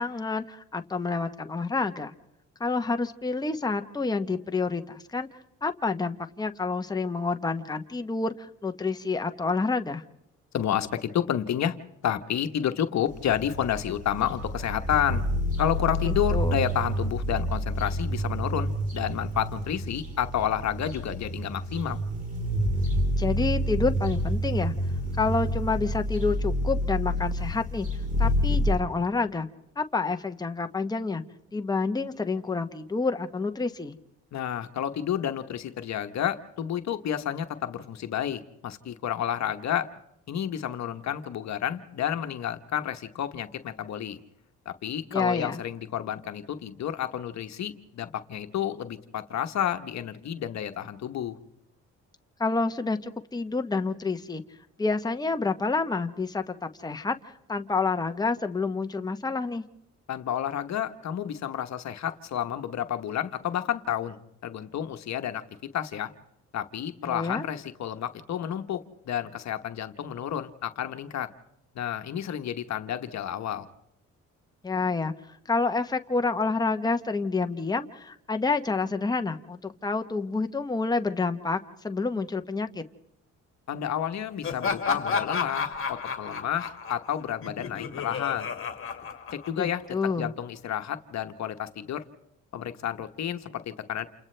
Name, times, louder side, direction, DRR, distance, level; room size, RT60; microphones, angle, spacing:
voice 1, 0.0-2.1 2.6-5.3 5.6-10.0 16.0-16.6 23.2-24.7 25.2-27.9 28.2-29.5 29.8-31.2 31.5-34.0 45.1-45.6 52.4-54.4 54.8-57.1 57.5-59.6 67.0-67.5 74.6-75.1 75.5-82.8 89.6-90.3, left 4 dB, 15° left, 7 dB, 1.0 m, -28 dB
voice 2, 10.5-11.8 12.0-15.2 15.6-22.0 34.3-39.9 40.3-44.2 44.6-51.4 60.1-65.4 65.7-66.1 66.5-71.3 71.7-73.7 83.7-88.5 89.3-92.0 92.5-94.1, left 10 dB, 65° left, 8 dB, 1.2 m, -30 dB
sound 1, 13.1-28.8, equal, 25° right, 4.1 m, -28 dB
Laughter, 84.4-89.9, left 5 dB, 45° left, 2.0 m, -32 dB
29.0 x 28.5 x 3.3 m, 0.81 s
cardioid pair, 90°, 30 cm